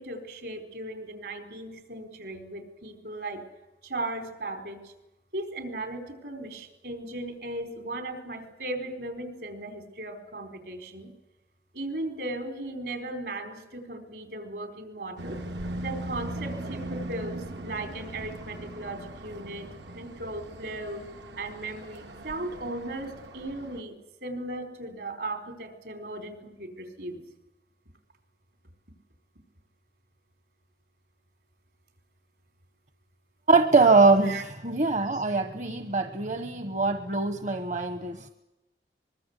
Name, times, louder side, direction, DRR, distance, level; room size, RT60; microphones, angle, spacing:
voice 1, 0.0-3.4 3.8-4.9 5.3-11.1 11.7-15.4 15.8-19.7 19.9-21.0 21.4-23.9 24.2-27.2 34.2-34.4 37.1-37.2, right 2 dB, 70° right, 7 dB, 4.6 m, -37 dB
sound 1, 15.2-23.8, right 1 dB, 85° right, 2.4 m, -39 dB
voice 2, 33.5-38.3, right 3 dB, 40° right, 9 dB, 1.1 m, -23 dB
24.0 x 22.0 x 8.2 m, 0.98 s
head